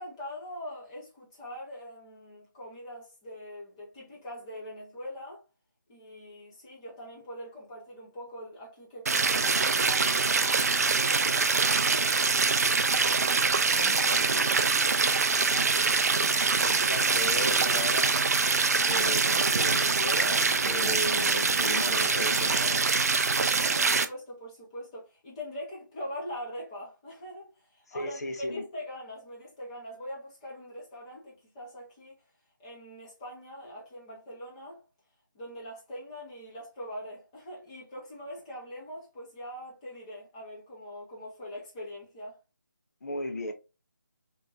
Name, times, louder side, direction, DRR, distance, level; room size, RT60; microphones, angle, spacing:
voice 1, 0.0-5.4 5.9-10.4 23.5-32.2 32.6-34.8 35.3-42.4, equal, 15° left, 1.0 m, -42 dB
sound 1, 9.1-24.0, right 4 dB, 50° right, 0.3 m, -24 dB
voice 2, 13.7-14.5 16.6-18.2 18.9-22.9 27.9-28.6 43.0-43.5, left 2 dB, 50° left, 0.6 m, -36 dB
3.5 x 3.0 x 2.5 m
figure-of-eight pair, 160°, 11 cm